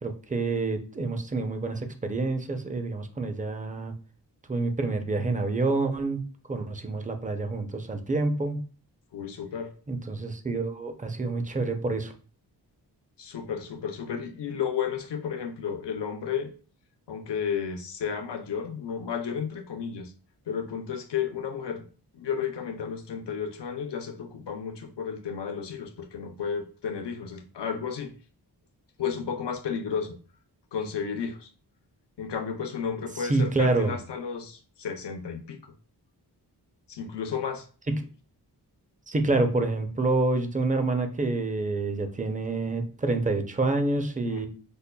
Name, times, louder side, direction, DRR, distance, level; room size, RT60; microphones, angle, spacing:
voice 1, 0.0-3.9 4.5-6.2 6.5-8.6 9.9-12.1 33.2-34.0 37.9-38.0 39.1-44.5, right 3 dB, 20° right, 6 dB, 0.4 m, -27 dB
voice 2, 9.1-9.7 13.2-16.5 17.1-20.1 20.5-21.8 22.1-28.1 29.0-30.2 30.7-31.5 32.2-35.7 36.9-37.6 44.2-44.5, left 7 dB, 75° left, 6 dB, 0.6 m, -32 dB
5.3 x 2.2 x 2.2 m, 0.39 s
wide cardioid pair, 100°, 42 cm